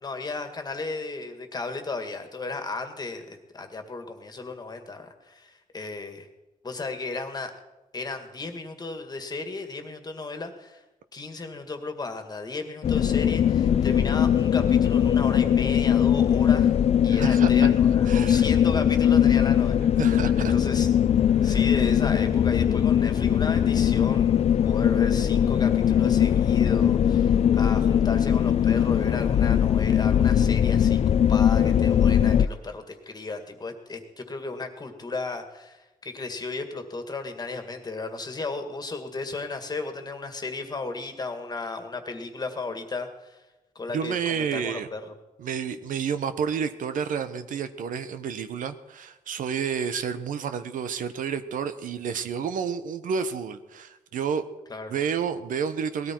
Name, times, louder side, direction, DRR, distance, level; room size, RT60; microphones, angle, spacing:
voice 1, 0.0-6.3 6.6-7.5 7.9-10.8 11.1-16.7 17.0-20.2 20.5-20.9 21.4-43.4 43.8-45.0 54.7-54.9, left 3 dB, 30° left, 6 dB, 2.0 m, -34 dB
sound 1, 12.8-32.5, left 9 dB, 50° left, 0.4 m, -21 dB
voice 2, 17.1-17.7 18.1-18.4 20.0-20.5 21.3-21.6 43.9-44.9 45.4-54.4 54.9-56.1, right 7 dB, 75° right, 11 dB, 1.0 m, -30 dB
19.0 x 13.5 x 4.6 m, 1.0 s
cardioid pair, 115°, 14 cm